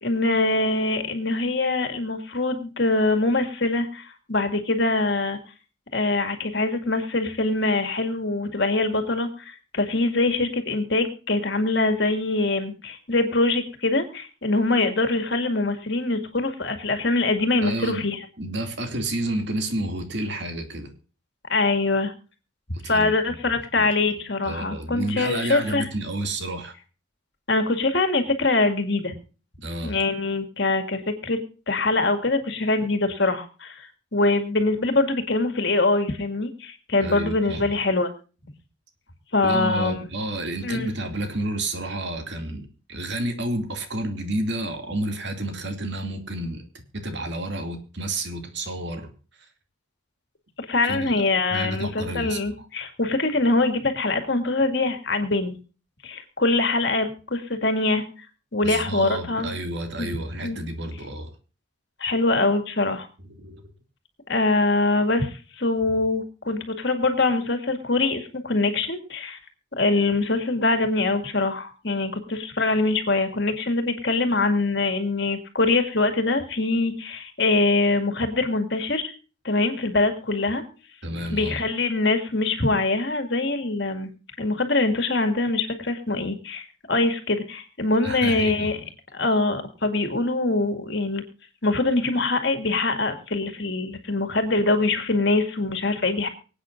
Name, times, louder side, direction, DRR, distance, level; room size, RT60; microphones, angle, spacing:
voice 1, 0.0-5.4 5.9-18.2 21.5-22.1 22.9-25.9 27.5-29.1 29.8-31.4 31.7-38.1 39.3-40.0 40.6-40.9 50.7-55.6 56.0-58.0 58.5-59.5 60.0-60.1 60.4-60.6 62.0-63.1 64.3-69.4 69.8-79.1 79.4-80.6 81.3-84.1 84.4-88.8 89.1-91.2 91.6-96.3, left 2 dB, 55° left, 7 dB, 2.2 m, -23 dB
voice 2, 17.6-18.1 18.4-20.9 22.8-23.9 24.4-26.7 29.6-30.0 37.0-37.8 39.4-46.6 47.0-49.1 50.8-51.1 51.5-52.4 58.6-61.3 63.4-63.6 81.0-81.6 88.0-88.7, right 1 dB, 60° right, 6 dB, 2.5 m, -30 dB
24.5 x 8.9 x 2.6 m, 0.36 s
head